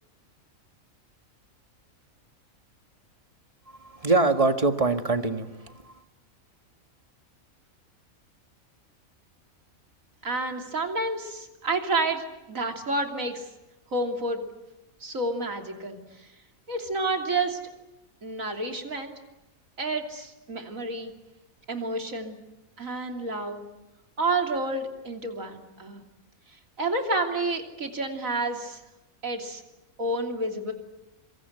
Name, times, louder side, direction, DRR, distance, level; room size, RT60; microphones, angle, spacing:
voice 1, 3.7-5.9, right 3 dB, 25° right, 7 dB, 1.7 m, -24 dB
voice 2, 10.2-13.5 13.9-14.4 15.0-16.0 16.7-17.6 18.2-19.1 19.8-21.1 21.7-22.4 22.8-23.6 24.2-26.0 26.8-28.8 29.2-29.6 30.0-30.7, right 2 dB, 70° right, 4 dB, 3.4 m, -29 dB
26.0 x 24.5 x 8.1 m, 1.0 s
omnidirectional pair, 1.5 m